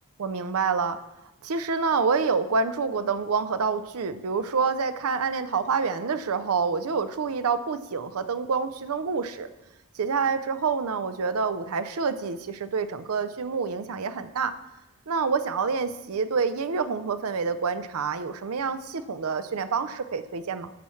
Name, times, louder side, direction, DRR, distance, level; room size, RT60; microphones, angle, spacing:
voice 1, 0.2-1.0 1.4-9.5 9.9-14.5 15.1-20.7, right 5 dB, 80° right, 11 dB, 0.5 m, -27 dB
12.0 x 7.1 x 3.2 m, 0.98 s
head